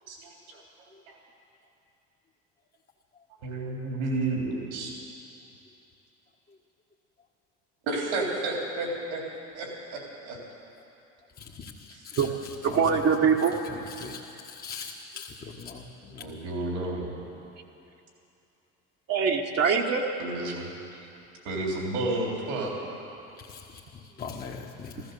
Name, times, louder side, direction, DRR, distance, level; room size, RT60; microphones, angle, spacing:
voice 1, 0.1-1.2 3.4-4.9 7.8-9.2 9.5-10.4 16.2-17.1 20.2-20.7 21.4-22.7, right 2 dB, 80° right, -1 dB, 3.5 m, -31 dB
voice 2, 11.3-16.4 23.4-25.1, left 5 dB, 25° left, -2 dB, 1.4 m, -42 dB
voice 3, 12.6-13.5 19.1-20.1, right 6 dB, 45° right, 1 dB, 1.4 m, -23 dB
14.5 x 14.0 x 6.9 m, 2.8 s
hypercardioid pair, 80°, 34 cm